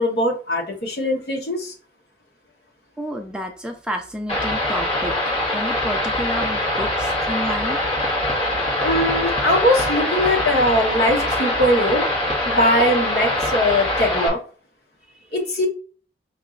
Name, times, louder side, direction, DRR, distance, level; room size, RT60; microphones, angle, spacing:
voice 1, 0.0-1.7 8.8-12.0 12.5-14.4 15.3-15.7, left 1 dB, 60° left, 0 dB, 1.1 m, -20 dB
voice 2, 3.0-5.1 5.5-7.8 15.1-15.3, equal, 5° right, 3 dB, 0.4 m, -30 dB
sound 1, 4.3-14.3, left 1 dB, 35° left, 1.4 m, -23 dB
5.3 x 3.0 x 2.5 m, 0.40 s
head